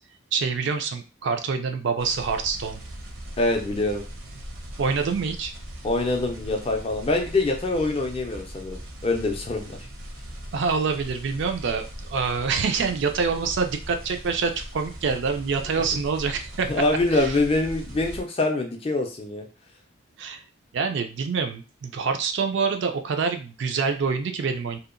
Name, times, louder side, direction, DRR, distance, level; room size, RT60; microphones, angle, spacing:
voice 1, 0.3-2.8 4.8-5.5 10.5-11.8 12.1-16.7 17.1-17.3 20.2-20.4 20.7-24.8, right 5 dB, 55° right, 6 dB, 0.3 m, -26 dB
sound 1, 2.0-18.2, equal, 70° right, 0.7 m, -40 dB
voice 2, 3.4-4.0 5.8-9.8 16.7-19.5, left 2 dB, 25° left, 3 dB, 0.3 m, -25 dB
2.7 x 2.0 x 2.5 m, 0.33 s
head